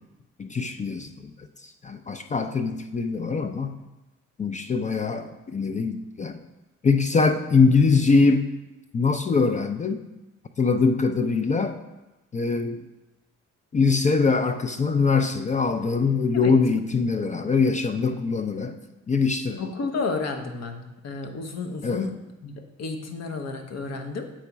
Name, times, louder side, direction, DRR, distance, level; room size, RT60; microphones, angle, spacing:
voice 1, 0.4-1.3 1.8-3.8 4.4-6.4 6.8-8.5 8.9-10.0 10.6-11.8 12.3-12.8 13.7-18.8 19.1-19.6 21.8-22.1, left 4 dB, 25° left, 7 dB, 0.3 m, -22 dB
voice 2, 19.6-24.3, left 4 dB, 60° left, 5 dB, 0.8 m, -32 dB
7.7 x 3.0 x 4.6 m, 1.0 s
cardioid pair, 90°, 30 cm